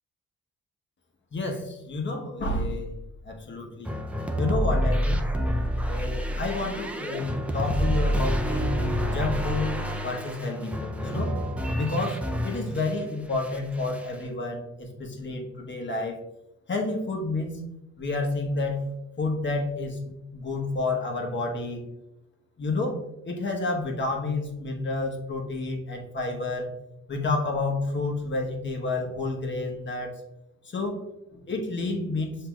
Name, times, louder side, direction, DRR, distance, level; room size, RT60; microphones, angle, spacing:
voice 1, 1.3-2.9 3.2-3.9 4.4-5.2 5.9-8.8 9.0-9.8 10.0-11.3 11.7-16.2 16.7-17.6 18.0-18.9 19.2-21.8 22.6-23.0 23.2-26.7 27.1-30.1 30.7-31.0 31.3-32.4, left 2 dB, 40° left, 1 dB, 1.1 m, -30 dB
sound 1, 3.9-13.0 13.3-14.1, equal, 5° right, 0.4 m, -28 dB
7.3 x 2.8 x 2.3 m, 0.90 s
cardioid pair, 90°, 30 cm